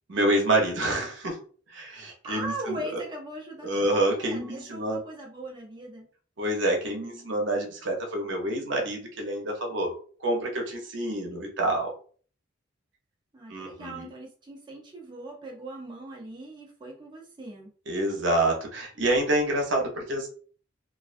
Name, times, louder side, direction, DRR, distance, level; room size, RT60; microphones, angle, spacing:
voice 1, 0.1-1.4 1.7-2.8 3.6-5.0 6.4-9.9 10.2-11.9 13.5-14.1 17.9-20.3, right 1 dB, 70° right, 1 dB, 0.7 m, -27 dB
voice 2, 2.2-6.1 13.3-17.7, right 1 dB, 25° right, -1 dB, 0.5 m, -39 dB
2.4 x 2.2 x 2.4 m, 0.43 s
head